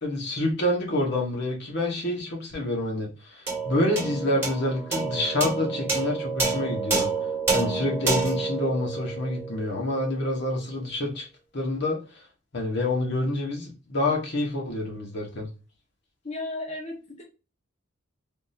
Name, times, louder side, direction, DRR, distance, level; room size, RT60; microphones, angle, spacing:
voice 1, 0.0-7.1 7.5-11.3 11.5-12.2 12.5-15.5, left 1 dB, 60° left, 1.1 m, -27 dB
sound 1, 3.5-10.1, right 4 dB, 15° right, 1.2 m, -28 dB
voice 2, 16.2-17.2, left 2 dB, 35° left, 0.9 m, -34 dB
3.6 x 2.6 x 2.7 m
head